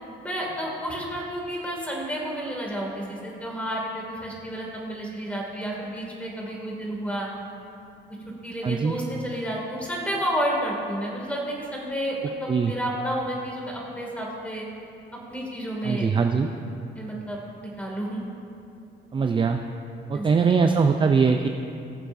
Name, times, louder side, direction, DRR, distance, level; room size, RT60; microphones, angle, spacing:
voice 1, 0.2-7.3 8.4-14.7 15.3-16.1 17.0-17.4 17.8-18.2 20.1-20.5, right 1 dB, 5° left, -3 dB, 2.4 m, -31 dB
voice 2, 8.6-9.0 12.5-12.7 15.8-16.5 19.1-19.6 20.1-21.5, right 5 dB, 25° right, 5 dB, 0.4 m, -21 dB
19.0 x 7.1 x 2.7 m, 2.7 s
cardioid pair, 110°, 20 cm